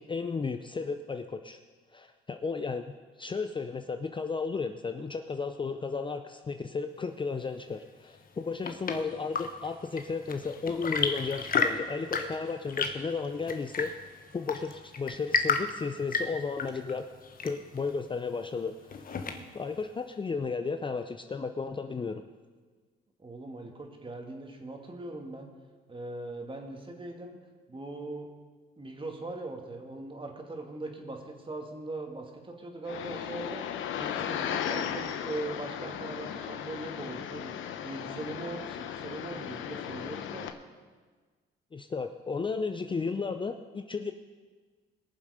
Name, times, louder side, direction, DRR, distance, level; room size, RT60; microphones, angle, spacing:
voice 1, 0.0-1.6 1.9-2.9 3.2-13.9 14.3-17.1 17.4-19.1 19.5-22.2 41.7-44.1, left 4 dB, 25° left, 8 dB, 0.6 m, -34 dB
Chirp tweet / Engine / Tap, 8.2-19.7, left 5 dB, 45° left, 1.1 m, -34 dB
voice 2, 23.2-25.5 25.9-27.4 27.7-28.3 28.8-37.5 37.8-40.5, right 2 dB, 25° right, 2 dB, 2.3 m, -40 dB
sound 1, 32.9-40.5, left 9 dB, 80° left, 0.9 m, -36 dB
21.0 x 7.3 x 5.0 m, 1.4 s
cardioid pair, 90°, 20 cm